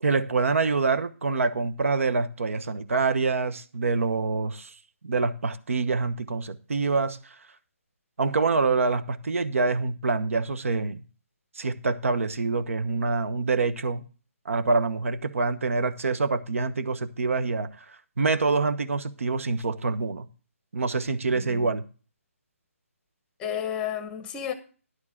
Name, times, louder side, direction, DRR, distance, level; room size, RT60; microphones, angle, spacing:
voice 1, 0.0-4.7 5.0-7.2 8.2-11.0 11.6-14.0 14.4-17.7 18.2-20.3 20.7-21.8, right 4 dB, 65° right, 1.0 m, -26 dB
voice 2, 23.4-24.5, left 9 dB, 10° left, 0.9 m, -32 dB
11.5 x 4.6 x 7.2 m
figure-of-eight pair, 155°, 8 cm